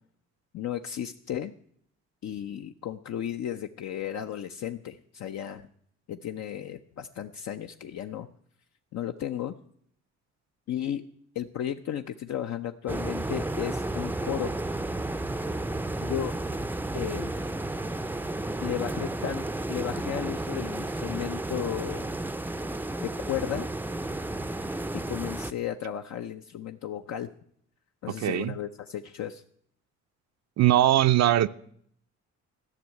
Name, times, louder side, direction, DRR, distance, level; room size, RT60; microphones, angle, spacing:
voice 1, 0.5-1.5 2.2-5.7 6.1-8.3 8.9-9.5 10.7-11.0 11.3-14.5 16.0-16.4 16.9-17.3 18.6-22.1 23.0-23.7 24.9-27.3 28.0-29.4, left 10 dB, 65° left, 6 dB, 0.7 m, -34 dB
sound 1, 12.9-25.5, right 2 dB, 5° right, 0.5 m, -32 dB
voice 2, 28.2-28.5 30.6-31.5, right 13 dB, 60° right, 10 dB, 0.5 m, -21 dB
13.5 x 6.4 x 9.5 m, 0.66 s
cardioid pair, 90°, 30 cm